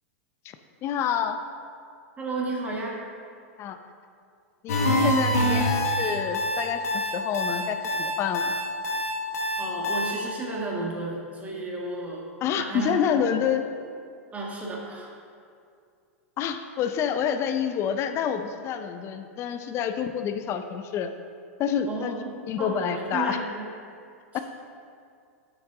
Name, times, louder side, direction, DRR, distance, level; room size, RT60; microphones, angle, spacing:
voice 1, 0.8-1.4 3.6-3.8 4.6-8.5 12.4-13.6 16.4-21.1 21.6-22.1 22.5-23.4 24.3-24.4, left 8 dB, 35° left, 8 dB, 0.5 m, -28 dB
voice 2, 2.2-3.0 9.6-12.3 12.6-13.3 14.3-15.1 21.9-23.7 24.3-24.4, right 2 dB, 20° right, -2 dB, 1.5 m, -33 dB
sound 1, 4.7-10.1, equal, 85° left, 1.3 m, -25 dB
8.7 x 6.1 x 3.7 m, 2.3 s
hypercardioid pair, 110°, 8 cm